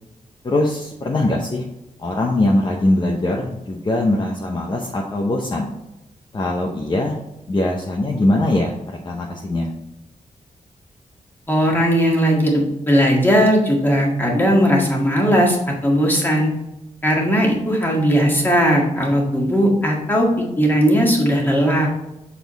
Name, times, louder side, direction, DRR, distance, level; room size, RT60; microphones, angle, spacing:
voice 1, 0.4-1.7 2.0-5.7 6.3-7.1 7.5-9.7, left 1 dB, 35° left, -1 dB, 0.8 m, -21 dB
voice 2, 11.5-16.5 17.0-20.3 20.6-21.9, equal, 15° left, -2 dB, 1.8 m, -17 dB
7.2 x 4.2 x 4.0 m, 0.90 s
wide cardioid pair, 145°, 13 cm